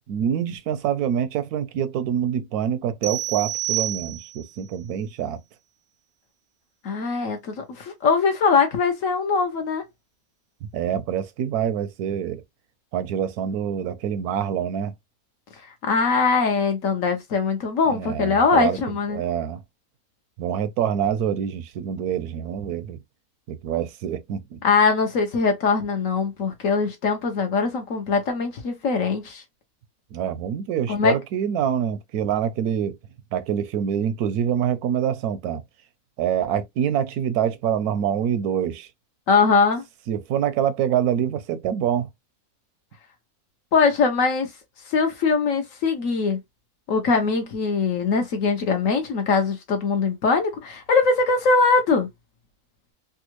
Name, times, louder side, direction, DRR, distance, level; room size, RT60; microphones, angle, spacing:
voice 1, 0.1-5.4 10.7-12.4 12.9-14.9 17.9-18.8 19.1-19.6 20.4-23.0 23.5-24.6 30.1-33.0 33.3-35.6 36.2-38.9 40.1-42.1, right 9 dB, 80° right, 1.1 m, -25 dB
sound 1, 3.0-4.5, right 15 dB, 65° right, 0.8 m, -28 dB
voice 2, 6.8-9.8 15.8-19.2 24.6-29.4 30.9-31.2 39.3-39.8 43.7-44.5 44.9-46.4 46.9-52.1, left 4 dB, 65° left, 1.1 m, -21 dB
3.4 x 2.3 x 2.9 m
omnidirectional pair, 1.6 m